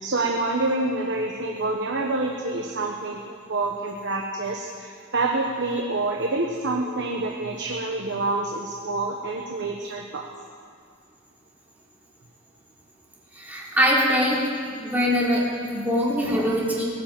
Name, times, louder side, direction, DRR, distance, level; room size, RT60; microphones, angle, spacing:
voice 1, 0.0-10.3, right 2 dB, 60° right, 1 dB, 1.2 m, -27 dB
voice 2, 13.3-14.4 14.7-16.8, equal, 10° right, -5 dB, 3.1 m, -23 dB
18.0 x 9.9 x 7.7 m, 2.2 s
head